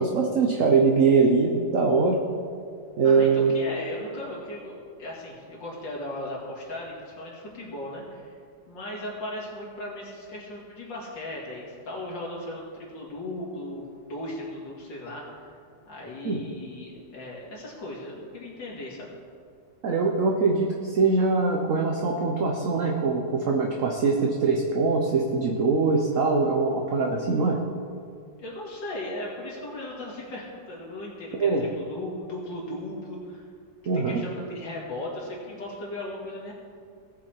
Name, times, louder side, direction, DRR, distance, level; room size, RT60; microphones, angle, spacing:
voice 1, 0.0-2.2 3.0-3.5 16.2-16.4 19.8-27.6 31.4-31.6 33.9-34.2, right 4 dB, 55° right, 1 dB, 1.1 m, -22 dB
voice 2, 3.0-8.3 8.7-15.6 15.9-19.1 28.4-33.4 33.9-36.5, left 1 dB, 80° left, -4 dB, 3.0 m, -37 dB
18.0 x 6.3 x 4.5 m, 2.2 s
omnidirectional pair, 2.0 m